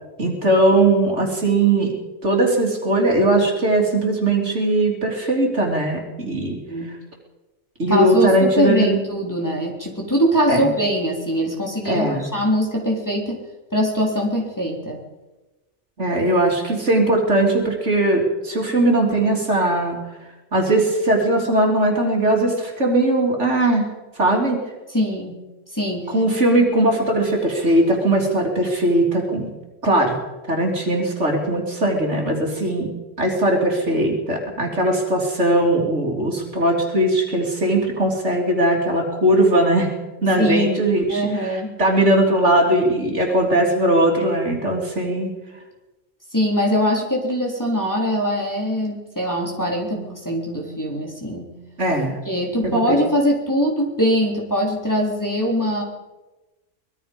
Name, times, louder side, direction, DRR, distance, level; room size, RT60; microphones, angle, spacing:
voice 1, 0.2-1.9 2.2-6.6 7.8-9.0 10.5-10.7 11.9-12.2 16.0-20.0 20.5-23.8 24.2-24.6 26.1-29.5 29.8-30.2 30.5-32.9 33.2-39.9 40.2-45.3 51.8-52.2 52.6-53.0, right 1 dB, 60° right, 0 dB, 3.6 m, -19 dB
voice 2, 7.9-13.4 13.7-15.0 24.9-25.4 25.7-26.1 40.4-41.7 46.3-51.5 52.2-55.8, equal, 15° left, -2 dB, 3.7 m, -22 dB
24.5 x 20.5 x 5.3 m, 1.1 s
omnidirectional pair, 1.4 m